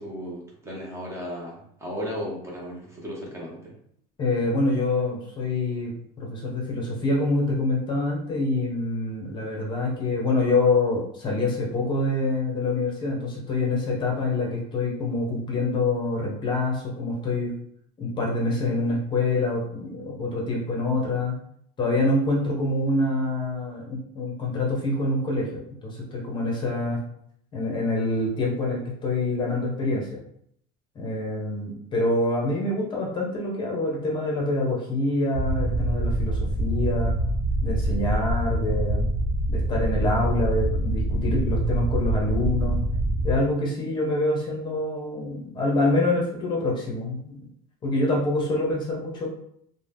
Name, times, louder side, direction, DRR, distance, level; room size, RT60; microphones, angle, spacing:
voice 1, 0.0-3.8, equal, 15° right, -3 dB, 0.7 m, -35 dB
voice 2, 4.2-17.5 18.0-21.4 21.8-27.0 27.5-30.1 31.0-37.2 37.6-39.0 39.5-42.8 43.2-47.4 47.8-49.3, left 2 dB, 25° left, -2 dB, 0.7 m, -26 dB
sound 1, 35.3-43.4, right 1 dB, 85° right, 0.8 m, -25 dB
2.7 x 2.1 x 3.4 m, 0.68 s
cardioid pair, 160°, 17 cm